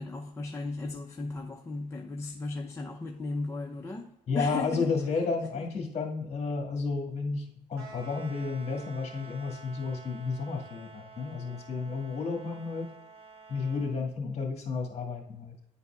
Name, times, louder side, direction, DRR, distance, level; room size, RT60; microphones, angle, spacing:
voice 1, 0.0-5.2 5.5-5.7, left 3 dB, 15° left, 0.5 m, -36 dB
voice 2, 4.3-12.9 13.5-15.5, left 4 dB, 40° left, 1.7 m, -32 dB
sound 1, 7.7-14.0, right 4 dB, 70° right, 2.3 m, -49 dB
10.5 x 4.1 x 2.3 m
cardioid pair, 110°, 17 cm